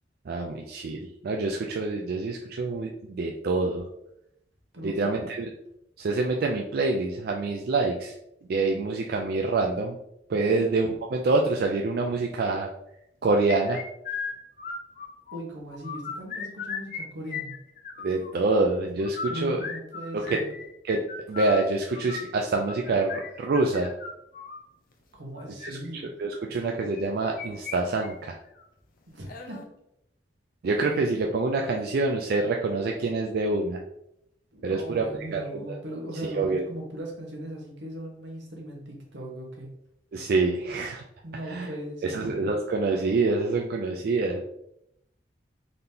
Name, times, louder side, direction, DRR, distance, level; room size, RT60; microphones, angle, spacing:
voice 1, 0.3-3.9 4.8-5.5 6.0-8.1 8.5-10.0 10.3-12.7 13.2-13.8 18.0-19.6 20.1-20.4 20.8-21.0 21.3-23.9 25.6-28.3 30.6-33.8 34.6-35.4 35.7-35.8 36.4-36.6 40.1-41.0 41.5-41.7 42.0-44.4, right 3 dB, 60° right, 1 dB, 0.4 m, -26 dB
voice 2, 4.7-5.3 15.3-17.5 19.3-20.5 25.1-26.0 29.1-29.7 34.5-39.7 41.2-42.3, right 1 dB, 85° right, -1 dB, 1.1 m, -39 dB
sound 1, 13.5-15.4 15.7-17.0 17.3-18.3 19.0-24.6 25.4-25.7 26.9-27.8 28.0-28.1 28.6-28.7 29.3-29.6, left 5 dB, 50° left, 0.5 m, -36 dB
3.9 x 2.8 x 3.4 m, 0.79 s
head